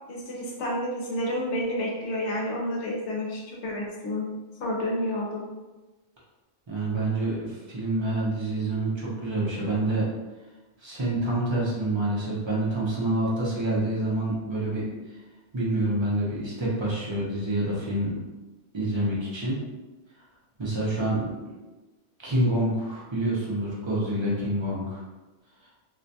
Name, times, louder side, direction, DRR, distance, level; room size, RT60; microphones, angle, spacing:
voice 1, 0.1-4.3 4.6-5.4, left 1 dB, 75° left, -2 dB, 0.9 m, -30 dB
voice 2, 6.7-10.1 10.8-14.9 15.5-18.2 18.7-19.6 20.6-21.5 22.2-25.0, right 1 dB, 35° right, -5 dB, 0.4 m, -27 dB
2.4 x 2.2 x 2.6 m, 1.1 s
omnidirectional pair, 1.2 m